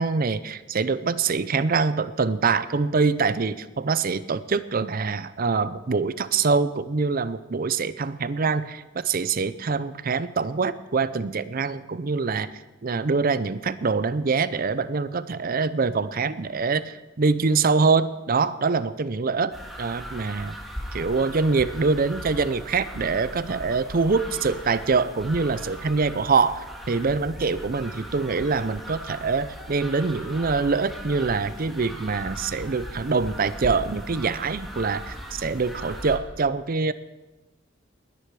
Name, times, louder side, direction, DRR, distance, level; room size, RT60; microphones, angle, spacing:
voice 1, 0.0-12.5 12.8-20.5 20.9-36.9, right 4 dB, 50° right, 15 dB, 0.6 m, -24 dB
sound 1, 19.5-36.2, equal, ahead, 2.3 m, -38 dB
20.5 x 10.0 x 4.8 m, 1.1 s
head